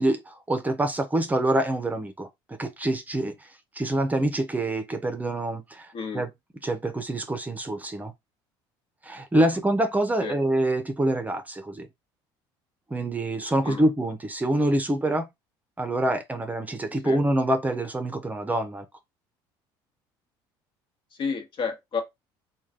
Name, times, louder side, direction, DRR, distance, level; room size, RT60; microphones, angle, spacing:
voice 1, 0.0-3.5 3.7-6.3 6.6-8.1 9.0-11.9 12.9-15.3 15.8-18.8, right 1 dB, 15° right, 0.7 m, -26 dB
voice 2, 5.9-6.3 10.2-10.4 13.6-13.9 17.0-17.2 21.1-22.0, left 5 dB, 50° left, 1.2 m, -31 dB
3.1 x 2.3 x 3.7 m
supercardioid pair, 90°, 11 cm